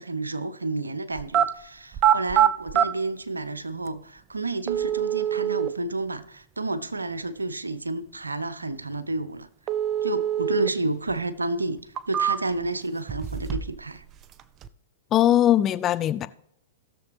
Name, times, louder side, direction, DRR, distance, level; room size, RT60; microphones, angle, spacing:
voice 1, 0.0-9.5 10.0-14.0, right 2 dB, 90° right, 0.7 m, -30 dB
sound 1, 1.2-1.5 1.9-2.9 3.9-4.0 4.7-5.7 9.7-10.7 11.1-11.2 11.8-12.7 13.1-13.8 14.1-14.7, right 10 dB, 30° right, 0.5 m, -24 dB
voice 2, 15.1-16.3, left 12 dB, 30° left, 0.5 m, -20 dB
16.5 x 6.9 x 3.4 m
figure-of-eight pair, 110°, 0 cm